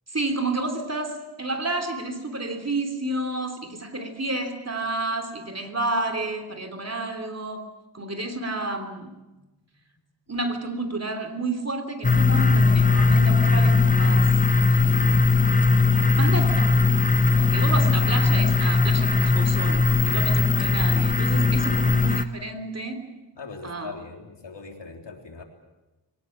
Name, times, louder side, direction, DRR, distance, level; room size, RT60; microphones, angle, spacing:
voice 1, 0.1-7.6 7.9-9.1 10.3-14.4 14.7-15.2 16.1-16.9 17.3-23.0 23.6-23.9, right 2 dB, 35° right, 5 dB, 3.2 m, -30 dB
sound 1, 12.0-22.2, left 4 dB, 20° left, 1.2 m, -19 dB
voice 2, 21.6-22.0 23.4-25.4, left 3 dB, 85° left, 2 dB, 3.6 m, -40 dB
23.0 x 19.0 x 8.6 m, 1.1 s
wide cardioid pair, 80°, 42 cm